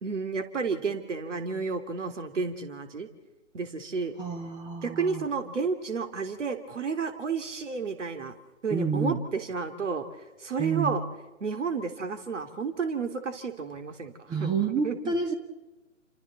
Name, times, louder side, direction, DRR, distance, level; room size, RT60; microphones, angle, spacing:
voice 1, 0.0-3.1 3.5-4.1 4.8-8.4 8.6-10.1 10.4-11.0 11.4-15.1, right 5 dB, 65° right, 8 dB, 3.1 m, -31 dB
voice 2, 4.2-5.3 8.7-9.2 10.6-11.0 14.3-15.3, right 5 dB, 10° right, 9 dB, 1.1 m, -29 dB
29.0 x 27.0 x 4.3 m, 1.1 s
figure-of-eight pair, 135°, 40 cm